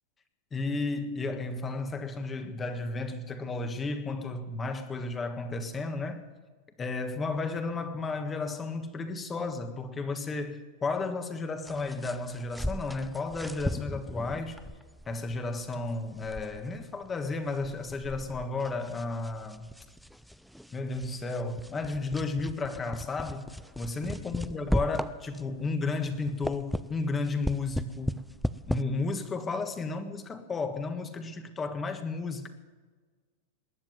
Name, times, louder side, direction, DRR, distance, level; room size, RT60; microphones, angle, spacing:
voice 1, 0.5-6.2 6.8-14.6 15.1-19.6 20.7-23.5 23.7-28.2 28.7-32.5, left 3 dB, 20° left, 1.5 m, -33 dB
sound 1, 11.7-25.6 26.0-28.8, equal, ahead, 0.4 m, -37 dB
20.0 x 7.6 x 9.4 m
supercardioid pair, 130°, 0 cm